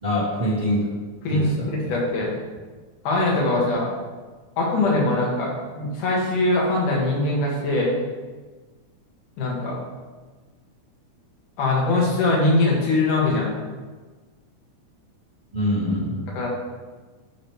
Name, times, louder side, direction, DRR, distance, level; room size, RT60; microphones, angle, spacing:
voice 1, 0.0-0.9 1.3-1.9 15.5-16.3, equal, 20° right, -8 dB, 1.4 m, -25 dB
voice 2, 1.2-2.3 3.0-3.9 4.6-7.9 9.4-9.8 11.6-13.5 16.3-16.5, left 2 dB, 85° left, -3 dB, 3.1 m, -22 dB
11.5 x 4.8 x 3.4 m, 1.3 s
omnidirectional pair, 3.5 m